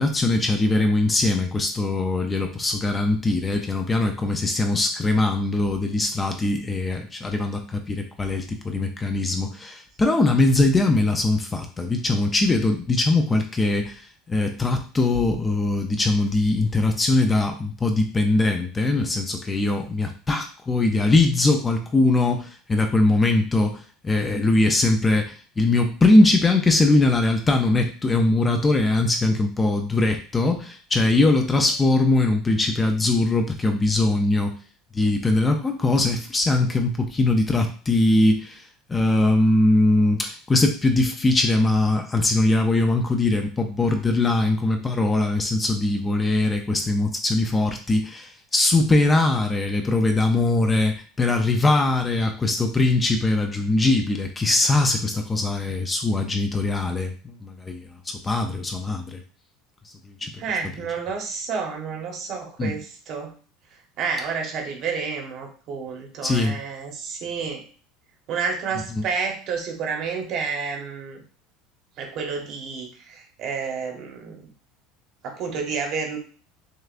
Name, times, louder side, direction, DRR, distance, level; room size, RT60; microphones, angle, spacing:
voice 1, 0.0-34.6 34.9-59.2 59.8-60.4 62.6-62.8 66.2-66.6 68.9-69.1, left 2 dB, 15° left, 4 dB, 0.4 m, -21 dB
voice 2, 60.4-63.3 64.0-67.6 68.3-71.2 72.0-74.5 75.2-76.2, right 5 dB, 40° right, 3 dB, 0.9 m, -30 dB
6.4 x 2.3 x 2.5 m, 0.40 s
cardioid pair, 160°, 0 cm